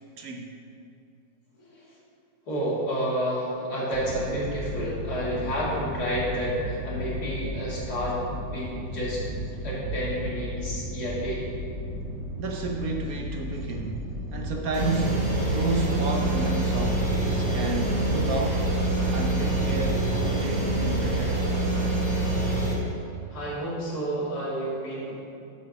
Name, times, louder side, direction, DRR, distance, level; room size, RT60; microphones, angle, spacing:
voice 1, 0.2-0.5 12.4-18.7 19.1-21.4, right 3 dB, 60° right, 1 dB, 1.0 m, -32 dB
voice 2, 1.6-1.9 2.5-9.2 9.6-11.5 23.3-25.2, equal, 50° left, -7 dB, 2.7 m, -30 dB
sound 1, 3.9-21.2, equal, ahead, 1.5 m, -35 dB
sound 2, 14.7-22.7, right 2 dB, 25° right, 1.8 m, -26 dB
8.0 x 5.9 x 6.4 m, 2.6 s
omnidirectional pair, 2.1 m